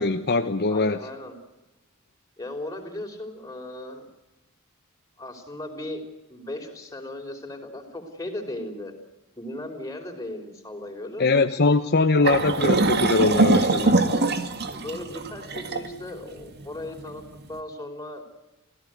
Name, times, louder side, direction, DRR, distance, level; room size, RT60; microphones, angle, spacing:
voice 1, 0.0-1.1 11.2-14.0, left 3 dB, 50° left, 7 dB, 1.0 m, -22 dB
voice 2, 0.7-1.3 2.4-4.1 5.2-6.0 6.3-8.9 9.4-11.3 14.0-17.2 17.5-18.2, left 1 dB, 15° left, 3 dB, 5.0 m, -37 dB
sound 1, 12.2-17.4, right 2 dB, 50° right, 2.0 m, -23 dB
28.0 x 17.0 x 9.6 m, 1.0 s
head